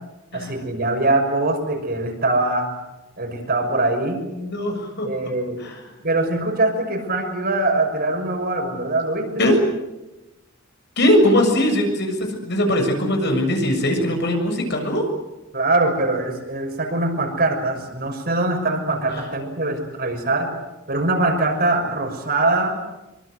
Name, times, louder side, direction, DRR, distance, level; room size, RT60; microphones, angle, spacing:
voice 1, 0.3-2.7 3.2-4.2 5.0-5.6 6.0-9.5 15.5-20.5 20.9-22.8, right 2 dB, 50° right, 3 dB, 6.1 m, -22 dB
voice 2, 4.3-5.1 5.6-5.8 9.4-9.6 11.0-15.1 19.1-19.3, left 1 dB, 55° left, 4 dB, 7.0 m, -20 dB
26.0 x 24.5 x 8.0 m, 0.98 s
head